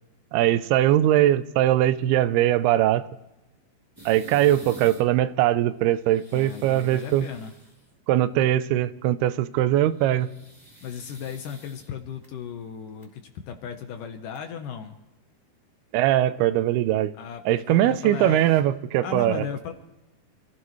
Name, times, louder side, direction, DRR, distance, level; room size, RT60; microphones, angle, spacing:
voice 1, 0.3-3.0 4.1-7.3 8.1-10.3 15.9-17.1 17.5-19.5, right 13 dB, 85° right, 14 dB, 2.6 m, -21 dB
sound 1, 4.0-5.0 5.9-7.9 9.9-12.3 12.9-13.0 14.0-14.1 14.3-14.4 17.7-18.6, right 1 dB, 5° right, 2.6 m, -48 dB
voice 2, 6.3-7.5 10.8-15.0 17.2-18.4 19.0-19.7, left 7 dB, 70° left, 6 dB, 2.3 m, -36 dB
27.5 x 15.0 x 3.1 m, 1.0 s
omnidirectional pair, 4.6 m